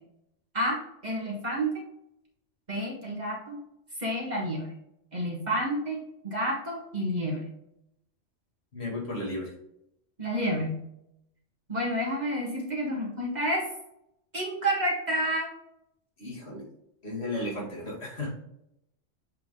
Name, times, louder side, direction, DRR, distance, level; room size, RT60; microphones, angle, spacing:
voice 1, 0.5-1.8 2.7-3.6 4.0-4.7 5.1-7.5 10.2-10.9 11.7-13.7 14.3-15.5, equal, 35° right, -3 dB, 1.6 m, -29 dB
voice 2, 8.7-9.5 16.2-16.7 17.0-18.3, left 1 dB, 55° left, -5 dB, 2.4 m, -34 dB
7.6 x 3.7 x 3.7 m, 0.79 s
omnidirectional pair, 1.3 m